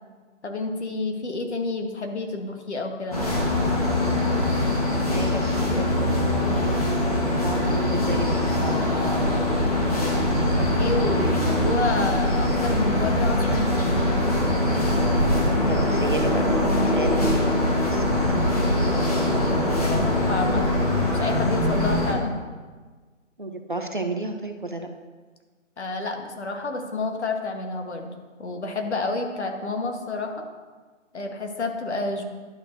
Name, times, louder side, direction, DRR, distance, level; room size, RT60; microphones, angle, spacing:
voice 1, 0.4-3.2 10.6-13.8 19.5-20.6 20.9-22.3 25.8-28.1 28.4-30.5 31.1-32.2, left 3 dB, 60° left, 4 dB, 1.2 m, -29 dB
sound 1, 3.1-22.1, left 1 dB, 30° left, 1.1 m, -22 dB
voice 2, 5.1-8.3 11.0-11.6 14.9-15.3 15.7-16.5 16.8-18.4 23.4-24.9, right 2 dB, 45° right, 5 dB, 0.4 m, -33 dB
11.0 x 6.1 x 2.6 m, 1.4 s
hypercardioid pair, 175°, 38 cm